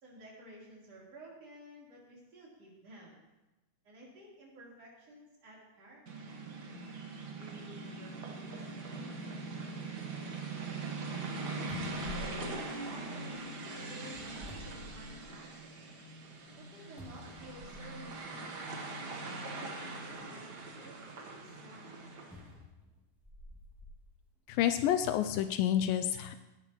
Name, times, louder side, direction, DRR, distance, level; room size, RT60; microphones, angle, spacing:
voice 1, 0.0-3.2 3.8-6.3 7.4-10.8 11.9-15.8 16.6-18.5 19.3-22.0, right 1 dB, 45° right, -5 dB, 4.7 m, -53 dB
sound 1, 6.1-22.5, right 3 dB, 90° right, 0.9 m, -42 dB
sound 2, 11.7-13.4 14.1-15.5 15.9-16.0 17.0-18.1 19.0-19.1 22.3-24.0 24.6-24.8, equal, ahead, 0.9 m, -50 dB
voice 2, 24.5-26.3, left 11 dB, 85° left, 10 dB, 2.2 m, -29 dB
18.0 x 12.0 x 3.1 m, 1.0 s
omnidirectional pair, 4.1 m